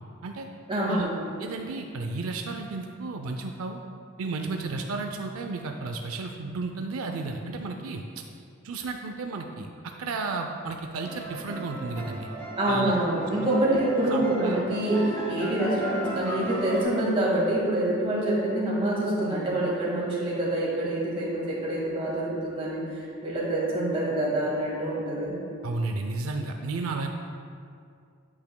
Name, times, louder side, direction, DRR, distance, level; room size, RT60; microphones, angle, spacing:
voice 1, 0.7-1.1 12.6-25.3, right 1 dB, 25° right, -6 dB, 1.8 m, -26 dB
voice 2, 1.4-3.8 4.2-8.0 8.6-9.7 10.0-12.3 12.7-12.9 13.7-13.8 14.1-14.6 25.6-27.1, right 3 dB, 85° right, 4 dB, 0.5 m, -33 dB
sound 1, 11.0-16.8, right 1 dB, 15° left, 1.6 m, -35 dB
8.5 x 8.0 x 2.2 m, 2.4 s
head